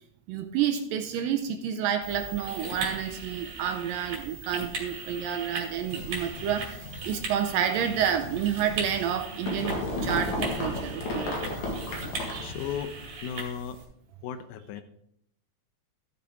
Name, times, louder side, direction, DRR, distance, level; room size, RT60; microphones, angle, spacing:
voice 1, 0.3-11.4 12.3-12.6, right 9 dB, 80° right, 7 dB, 2.1 m, -29 dB
sound 1, 2.0-13.8, right 3 dB, 50° right, 3.5 m, -39 dB
sound 2, 5.9-13.1, left 3 dB, 40° left, 4.4 m, -44 dB
sound 3, 9.2-12.6, left 1 dB, 55° left, 2.7 m, -32 dB
voice 2, 12.4-13.8 14.2-14.8, left 8 dB, 80° left, 10 dB, 2.5 m, -36 dB
13.5 x 6.9 x 3.6 m, 0.74 s
omnidirectional pair, 4.4 m